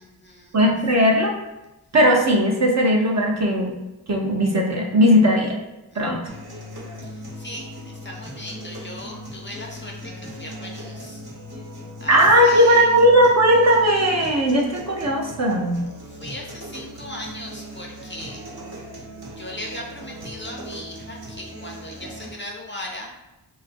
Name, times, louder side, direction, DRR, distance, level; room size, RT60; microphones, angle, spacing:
voice 1, 0.0-0.6 5.9-6.4 7.0-11.2 12.0-12.9 16.1-18.4 19.4-23.1, left 1 dB, 30° left, -1 dB, 0.4 m, -38 dB
voice 2, 0.5-1.3 1.9-3.7 4.1-5.6 6.0-6.2 12.1-15.8, equal, 40° right, -1 dB, 0.5 m, -17 dB
sound 1, 6.3-22.3, equal, 60° right, 1.1 m, -38 dB
3.8 x 2.4 x 2.5 m, 0.97 s
wide cardioid pair, 90°, 42 cm